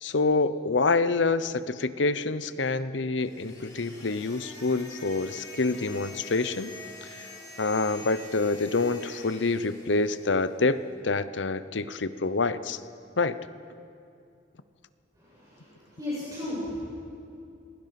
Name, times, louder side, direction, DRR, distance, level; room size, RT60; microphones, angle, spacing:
voice 1, 0.0-6.7 7.0-7.3 7.6-12.8 13.2-13.4, left 3 dB, 85° left, 13 dB, 0.9 m, -27 dB
sound 1, 3.2-10.6, left 2 dB, 20° left, 6.1 m, -46 dB
voice 2, 15.1-16.9, left 1 dB, 20° right, -8 dB, 7.2 m, -35 dB
27.5 x 21.5 x 6.0 m, 2.6 s
head